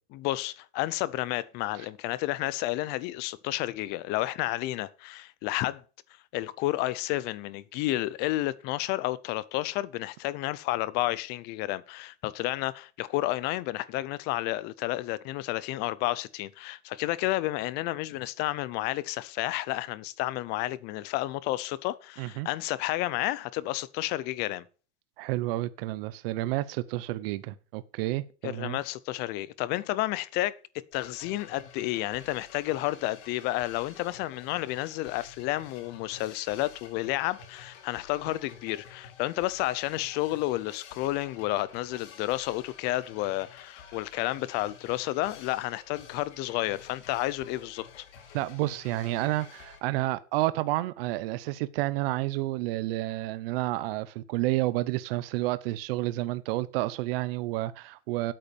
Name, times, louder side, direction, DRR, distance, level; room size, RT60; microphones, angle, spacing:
voice 1, 0.1-5.8 6.3-24.6 28.4-30.6 30.9-48.0, left 17 dB, 30° left, 0.5 m, -31 dB
voice 2, 22.2-22.5 25.2-28.8 48.3-58.3, right 17 dB, 55° right, 0.8 m, -30 dB
sound 1, 30.9-49.8, left 7 dB, 85° left, 3.9 m, -50 dB
8.7 x 8.1 x 6.8 m
supercardioid pair, 175°, 34 cm